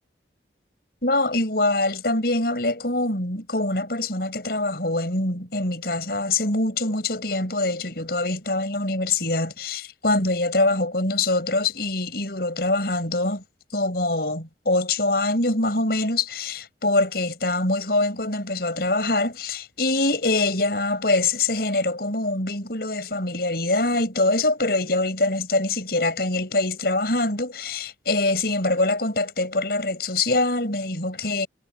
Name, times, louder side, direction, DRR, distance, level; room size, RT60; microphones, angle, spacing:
voice 1, 1.0-13.4 13.7-31.5, left 2 dB, 60° left, 7.2 m, -24 dB
head